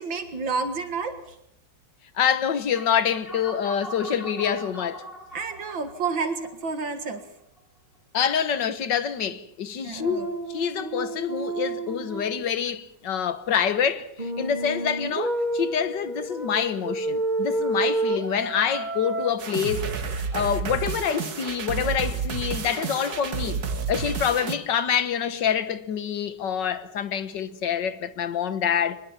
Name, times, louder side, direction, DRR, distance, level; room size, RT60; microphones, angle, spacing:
voice 1, 0.0-1.4 5.3-7.2 9.8-10.3, right 4 dB, 80° right, 2.6 m, -30 dB
voice 2, 2.2-5.1 8.1-23.6 23.9-29.0, left 8 dB, 65° left, 1.9 m, -26 dB
sound 1, 2.8-7.6, right 1 dB, ahead, 7.7 m, -42 dB
sound 2, 10.0-12.4 14.2-19.4, right 2 dB, 25° right, 1.2 m, -29 dB
sound 3, 19.4-24.5, right 5 dB, 55° right, 2.0 m, -30 dB
23.5 x 21.0 x 7.4 m
omnidirectional pair, 2.1 m